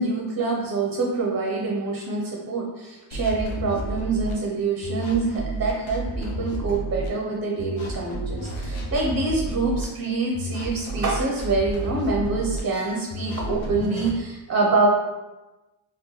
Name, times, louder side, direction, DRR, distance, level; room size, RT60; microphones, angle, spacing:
voice 1, 0.0-14.9, right 3 dB, 30° right, -2 dB, 0.6 m, -25 dB
sound 1, 3.1-4.3 4.8-7.1 7.6-9.8 10.3-12.6 13.1-14.1, right 1 dB, 75° left, 0.8 m, -31 dB
3.7 x 2.2 x 3.1 m, 1.1 s
cardioid pair, 80°, 48 cm